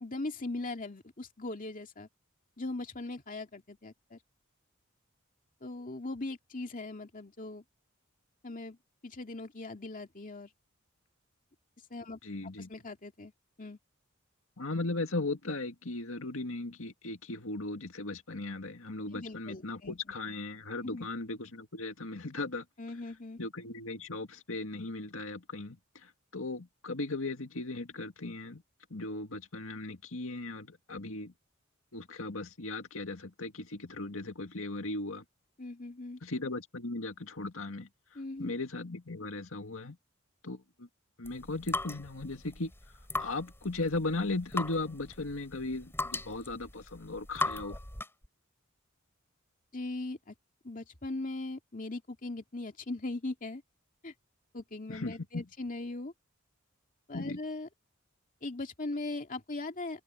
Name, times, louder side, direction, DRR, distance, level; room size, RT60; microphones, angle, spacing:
voice 1, 0.0-2.1 2.6-4.2 5.6-7.6 8.4-8.8 9.0-10.5 11.9-12.2 12.6-13.3 13.6-13.8 19.1-20.0 20.8-21.1 22.8-23.4 35.6-36.2 38.1-38.5 49.7-50.4 50.6-53.6 54.0-54.1 54.5-56.1 57.1-57.7 58.4-60.0, left 2 dB, 40° left, 2.4 m, -39 dB
voice 2, 12.2-12.7 14.6-22.6 23.4-28.6 28.9-31.3 31.9-35.2 36.2-37.9 38.4-40.0 40.4-40.9 41.2-42.7 43.2-47.8 54.9-55.4 57.1-57.4, left 2 dB, 85° left, 2.0 m, -37 dB
sound 1, 41.2-48.3, left 2 dB, 10° left, 5.4 m, -38 dB
head